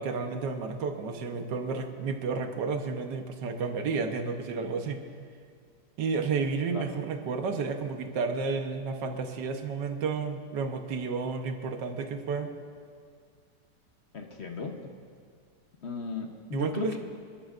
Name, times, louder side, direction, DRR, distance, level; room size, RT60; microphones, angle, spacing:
voice 1, 0.0-5.0 6.0-12.5 16.5-17.0, right 4 dB, 75° right, 6 dB, 1.6 m, -31 dB
voice 2, 14.1-14.9 15.8-17.0, left 5 dB, 45° left, 3 dB, 0.9 m, -36 dB
27.5 x 12.5 x 2.5 m, 2.1 s
omnidirectional pair, 1.9 m